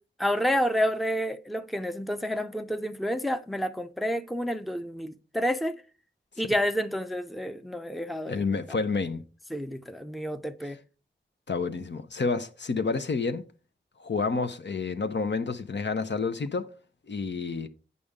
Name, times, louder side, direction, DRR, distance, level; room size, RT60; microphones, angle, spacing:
voice 1, 0.2-5.8 6.4-8.4 9.5-10.8, equal, ahead, 0.6 m, -29 dB
voice 2, 8.3-9.2 11.5-13.4 14.0-16.7 17.1-17.7, left 4 dB, 60° left, 0.8 m, -29 dB
8.4 x 5.5 x 3.6 m
cardioid pair, 55°, 21 cm